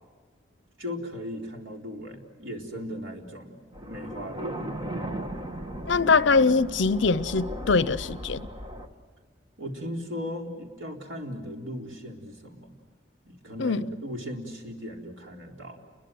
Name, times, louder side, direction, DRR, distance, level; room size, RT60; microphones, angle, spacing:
voice 1, 0.8-3.6 3.9-4.6 9.6-12.7 13.3-15.8, equal, 80° right, 4.1 m, -37 dB
sound 1, 3.7-8.9, right 1 dB, 20° right, 1.4 m, -36 dB
voice 2, 5.9-8.5 13.6-13.9, left 4 dB, 70° left, 0.7 m, -23 dB
29.5 x 22.5 x 7.8 m
head